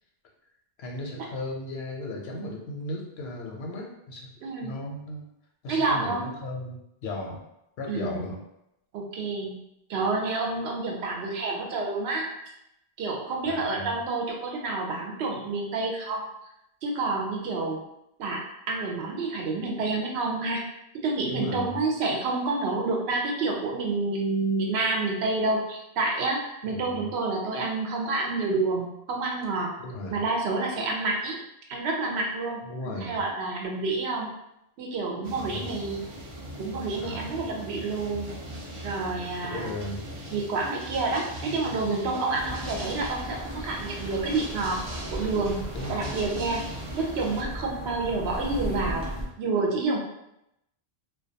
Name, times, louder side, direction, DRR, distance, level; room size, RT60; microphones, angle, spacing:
voice 1, 0.8-4.3 4.6-5.2 5.6-7.4 7.8-8.4 13.5-14.0 21.3-21.8 26.6-27.1 29.8-30.2 32.6-33.2 35.5-35.8 37.0-37.4 39.4-40.0 42.2-42.4 45.7-46.0, left 2 dB, 80° left, 0 dB, 0.8 m, -36 dB
voice 2, 4.4-4.7 5.7-6.2 7.9-8.3 8.9-9.5 9.9-12.3 13.0-16.3 16.8-17.8 18.2-18.4 18.7-20.6 21.0-29.7 30.1-31.4 31.7-32.6 33.0-34.3 34.8-36.1 36.6-38.3 38.8-39.8 40.3-44.8 45.1-45.6 45.9-46.6 46.9-49.1 49.4-50.0, right 3 dB, 80° right, 0 dB, 0.8 m, -28 dB
sound 1, 35.2-47.4, right 1 dB, 45° right, 0.4 m, -40 dB
sound 2, 42.4-49.3, equal, 5° right, 0.6 m, -37 dB
2.2 x 2.2 x 2.7 m, 0.83 s
omnidirectional pair, 1.1 m